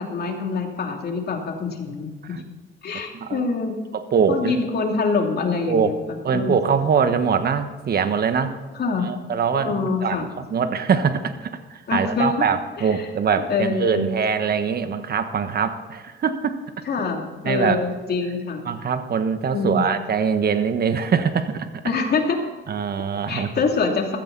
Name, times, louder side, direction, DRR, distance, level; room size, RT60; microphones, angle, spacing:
voice 1, 0.0-2.4 2.8-3.8 4.3-6.6 8.7-9.1 9.5-10.3 11.9-12.4 12.8-13.1 13.4-14.1 16.8-18.6 19.5-19.8 21.8-22.4 23.3-24.2, left 4 dB, 55° left, 2 dB, 2.9 m, -25 dB
voice 2, 3.1-3.4 3.9-4.5 5.7-5.9 6.2-8.6 9.0-16.6 17.4-17.8 18.6-21.7 22.7-23.5, right 6 dB, 50° right, 9 dB, 1.4 m, -23 dB
15.0 x 14.5 x 4.1 m, 1.4 s
cardioid pair, 90°, 20 cm